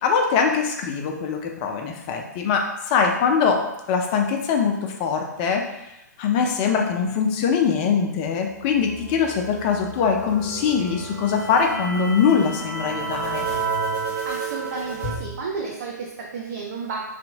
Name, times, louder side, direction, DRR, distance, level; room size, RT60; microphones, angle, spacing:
voice 1, 0.0-3.6 3.9-5.6 6.2-13.5 15.0-15.1, left 6 dB, 25° left, 2 dB, 0.3 m, -22 dB
sound 1, 8.6-15.1, right 4 dB, 30° right, 1.5 m, -31 dB
voice 2, 14.0-17.0, right 4 dB, 50° right, -2 dB, 0.4 m, -32 dB
2.6 x 2.2 x 2.7 m, 0.90 s
figure-of-eight pair, 120°, 10 cm